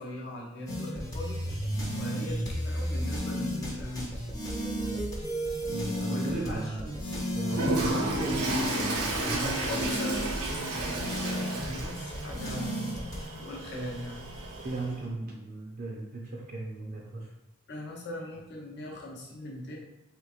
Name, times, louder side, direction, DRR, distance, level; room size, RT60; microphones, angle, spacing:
voice 1, 0.0-1.4 2.0-4.2 6.1-6.9 9.2-13.1 13.4-14.3 17.7-19.7, left 1 dB, 50° left, -2 dB, 0.8 m, -39 dB
sound 1, 0.7-13.2, equal, 15° left, 0.6 m, -33 dB
voice 2, 5.7-9.5 14.5-17.3, right 2 dB, 40° right, -2 dB, 0.5 m, -37 dB
Toilet flush, 7.5-15.0, right 1 dB, 80° right, 0.7 m, -33 dB
3.4 x 3.0 x 2.4 m, 0.85 s
head